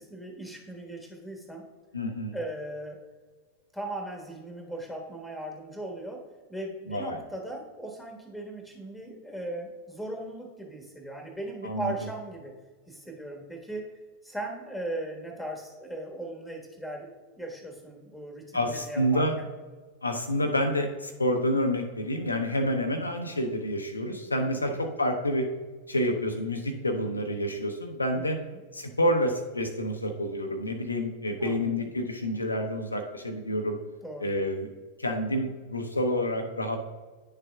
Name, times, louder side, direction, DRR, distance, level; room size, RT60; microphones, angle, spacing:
voice 1, 0.0-1.6 2.3-3.0 3.7-12.5 12.9-13.9 14.2-19.5 24.4-24.8 28.1-28.6 31.4-31.9 34.0-34.3, right 1 dB, ahead, 1 dB, 1.4 m, -38 dB
voice 2, 1.9-2.4 6.9-7.2 11.6-11.9 18.5-19.3 20.0-25.5 25.9-28.4 28.7-33.8 34.2-34.7 35.0-36.8, equal, 80° left, 3 dB, 0.7 m, -28 dB
9.8 x 6.6 x 2.3 m, 1.4 s
figure-of-eight pair, 90°, 0 cm